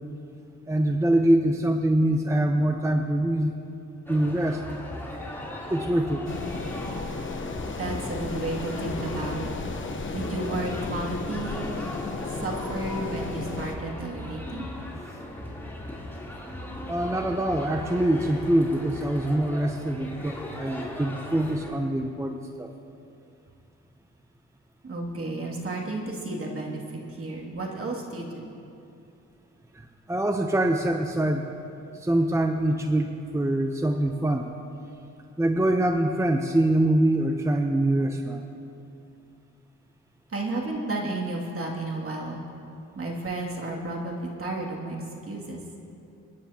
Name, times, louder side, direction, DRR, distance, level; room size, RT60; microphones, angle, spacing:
voice 1, 0.7-3.5 4.1-4.6 5.7-6.3 15.1-15.2 16.9-22.7 29.7-31.5 31.9-34.5 35.4-38.4, right 1 dB, 10° right, 4 dB, 0.7 m, -24 dB
sound 1, 4.1-21.7, left 1 dB, 5° left, 3.4 m, -38 dB
sound 2, 6.2-13.8, left 4 dB, 40° left, 1.0 m, -34 dB
voice 2, 7.8-9.5 10.1-11.7 12.3-14.7 24.8-28.4 40.3-42.4 43.0-45.6, right 2 dB, 45° right, -2 dB, 2.6 m, -32 dB
28.0 x 9.9 x 2.9 m, 2.6 s
cardioid pair, 80°, 30 cm